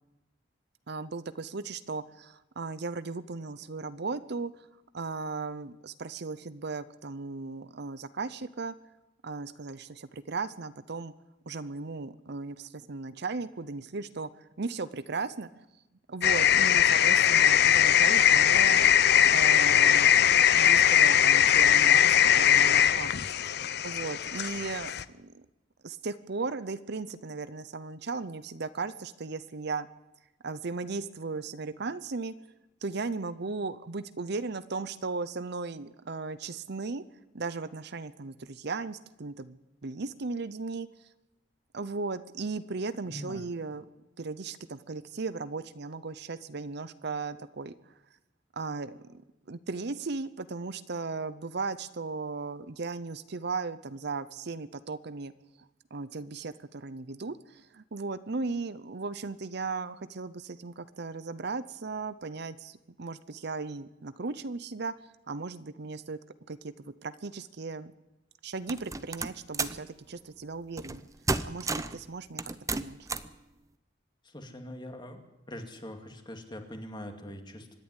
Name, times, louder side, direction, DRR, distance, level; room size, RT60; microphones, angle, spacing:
voice 1, 0.9-4.5 4.9-8.7 9.2-11.1 11.5-15.7 16.1-18.9 19.3-20.1 20.5-23.1 23.8-25.4 25.8-29.9 30.4-32.3 32.8-37.0 37.3-40.9 41.7-43.8 44.2-47.7 48.6-49.2 49.5-55.3 55.9-64.9 65.3-66.2 66.5-67.9 68.4-71.1 71.5-73.1, right 4 dB, 60° right, 15 dB, 0.8 m, -36 dB
sound 1, 16.2-25.0, left 10 dB, 60° left, 0.7 m, -21 dB
voice 2, 43.0-43.4 74.2-75.2 75.5-77.8, left 1 dB, 25° left, 5 dB, 2.3 m, -42 dB
sound 2, 68.7-69.8 70.8-71.0 71.3-72.0 72.4-73.3, right 3 dB, 15° right, 0.7 m, -32 dB
25.0 x 10.5 x 9.9 m, 0.97 s
head